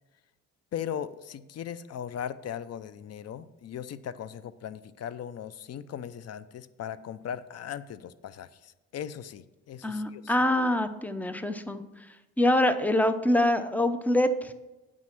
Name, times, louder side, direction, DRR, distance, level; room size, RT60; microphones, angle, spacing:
voice 1, 0.7-10.3, left 9 dB, 55° left, 16 dB, 0.6 m, -38 dB
voice 2, 9.8-11.8 12.4-14.5, left 1 dB, 5° left, 11 dB, 0.7 m, -25 dB
8.7 x 6.1 x 5.9 m, 1.1 s
cardioid pair, 90°, 30 cm